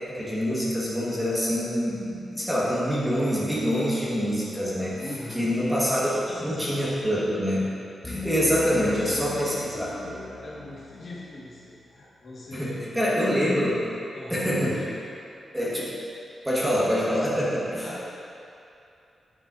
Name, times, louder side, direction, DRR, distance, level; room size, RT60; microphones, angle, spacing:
voice 1, 0.1-5.0 5.3-6.1 6.4-7.6 8.0-9.9 12.5-13.8 14.3-14.8 15.5-15.9 16.4-17.9, equal, 10° right, -8 dB, 1.5 m, -25 dB
voice 2, 5.0-5.5 5.9-6.7 8.6-13.6 14.1-15.0 17.8-18.1, left 1 dB, 50° left, -7 dB, 1.7 m, -40 dB
sound 1, 8.0-11.6, left 2 dB, 20° left, 1.3 m, -39 dB
9.7 x 7.8 x 2.7 m, 2.7 s
wide cardioid pair, 145°, 0 cm